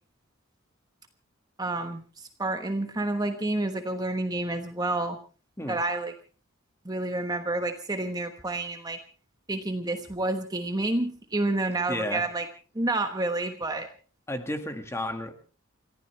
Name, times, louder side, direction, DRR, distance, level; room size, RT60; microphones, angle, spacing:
voice 1, 1.6-5.2 5.7-6.1 6.8-9.0 9.5-12.5 12.7-13.9, right 2 dB, 20° right, 6 dB, 1.2 m, -29 dB
voice 2, 11.9-12.3 14.3-15.3, left 1 dB, 15° left, 6 dB, 1.8 m, -32 dB
29.5 x 15.0 x 3.3 m, 0.35 s
head